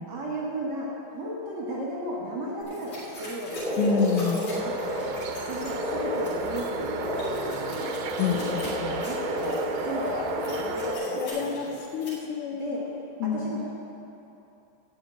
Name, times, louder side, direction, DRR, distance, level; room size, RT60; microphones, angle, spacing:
voice 1, 0.1-4.0 4.3-5.1 5.4-7.9 8.3-11.8 12.6-12.8 13.2-13.7, right 1 dB, 50° right, -5 dB, 1.6 m, -35 dB
sound 1, 2.6-12.1, left 1 dB, 55° left, 4.3 m, -44 dB
Frog, 3.5-11.3, left 1 dB, 15° left, 2.6 m, -31 dB
voice 2, 3.8-4.5 8.2-9.0 10.1-10.3 11.2-12.7 13.2-13.6, left 6 dB, 75° left, 4 dB, 2.0 m, -28 dB
sound 2, 4.6-10.9, right 6 dB, 75° right, 1.7 m, -37 dB
12.0 x 6.0 x 8.8 m, 2.9 s
omnidirectional pair, 4.0 m